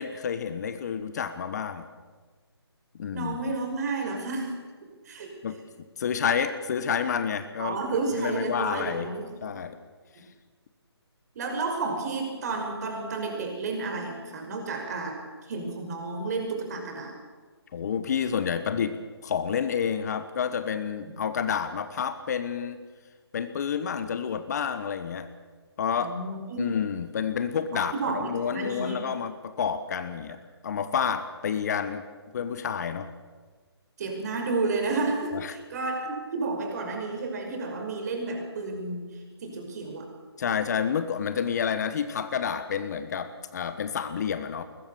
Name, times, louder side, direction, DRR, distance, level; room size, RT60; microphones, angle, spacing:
voice 1, 0.0-1.9 2.9-3.4 5.4-5.6 6.0-9.1 9.4-9.8 17.7-22.8 23.3-25.3 25.8-26.2 26.6-32.0 32.3-33.1 35.3-35.5 40.4-44.6, left 7 dB, 40° left, 10 dB, 1.3 m, -29 dB
voice 2, 3.1-4.5 5.1-5.3 7.6-9.3 11.3-15.2 15.5-17.1 26.0-26.8 27.7-29.0 34.0-39.1 39.4-40.1, right 3 dB, 40° right, 3 dB, 5.6 m, -31 dB
21.5 x 20.5 x 7.1 m, 1.4 s
hypercardioid pair, 155°, 14 cm